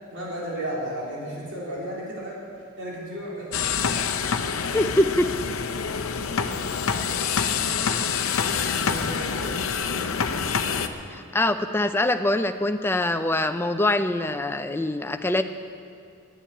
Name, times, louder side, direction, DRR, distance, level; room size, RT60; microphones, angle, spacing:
voice 1, 0.1-2.4 2.8-3.8 4.0-4.2 8.2-9.7, right 1 dB, 55° right, -6 dB, 3.6 m, -34 dB
sound 1, 3.5-10.9, left 6 dB, 70° left, 0.7 m, -26 dB
voice 2, 4.7-5.3 11.1-15.4, left 1 dB, 10° left, 8 dB, 0.4 m, -24 dB
10.5 x 8.7 x 9.6 m, 2.3 s
head